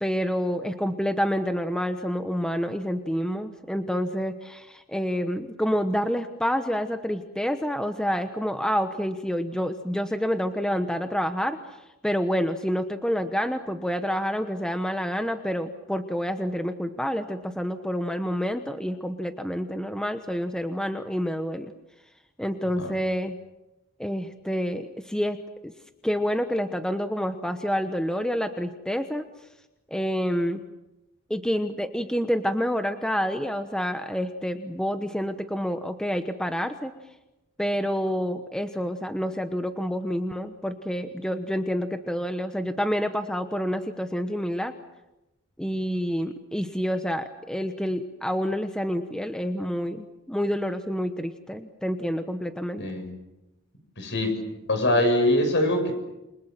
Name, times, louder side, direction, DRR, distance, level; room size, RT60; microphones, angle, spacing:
voice 1, 0.0-11.6 12.0-21.7 22.4-23.4 24.0-25.4 25.6-25.7 26.0-29.2 29.9-30.6 31.3-36.9 37.6-44.7 45.6-52.8, equal, 5° left, 7 dB, 1.1 m, -28 dB
voice 2, 54.0-54.4 54.7-55.9, left 1 dB, 55° left, 6 dB, 7.2 m, -23 dB
28.5 x 26.0 x 7.6 m, 0.98 s
head